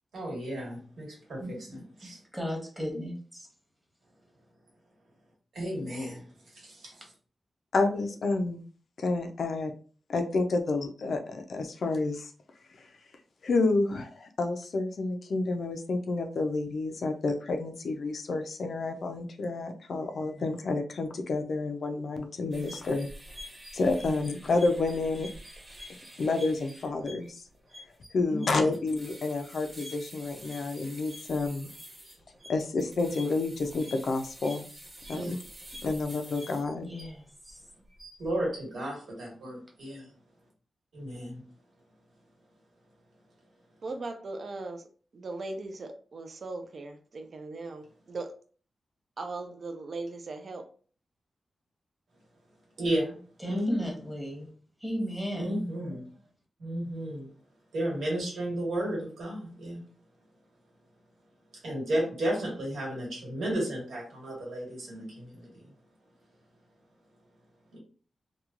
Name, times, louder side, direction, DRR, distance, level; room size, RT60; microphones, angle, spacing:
voice 1, 0.1-2.2 5.5-6.2 6.5-6.9 28.3-28.4 35.1-35.3 38.2-40.0 40.9-41.4 52.8-53.2 53.4-53.8 55.4-56.0 56.6-57.3 57.7-59.8 61.6-65.6 67.7-67.8, right 1 dB, 90° right, 1.4 m, -33 dB
voice 2, 2.0-3.5 36.8-37.6 53.4-54.5 54.8-55.7, equal, 5° right, 0.9 m, -35 dB
voice 3, 7.7-8.7 9.0-9.7 10.1-12.3 12.8-12.9 13.4-23.1 23.7-25.3 26.2-27.4 28.1-31.7 32.5-34.7 35.1-35.4 35.8-36.9, left 3 dB, 65° left, 0.4 m, -29 dB
sound 1, 22.5-37.5 37.9-38.3, equal, 30° right, 1.2 m, -47 dB
voice 4, 43.8-44.9 45.1-48.3 49.2-50.6, right 3 dB, 50° right, 0.4 m, -38 dB
2.9 x 2.2 x 2.4 m
wide cardioid pair, 140°, 0 cm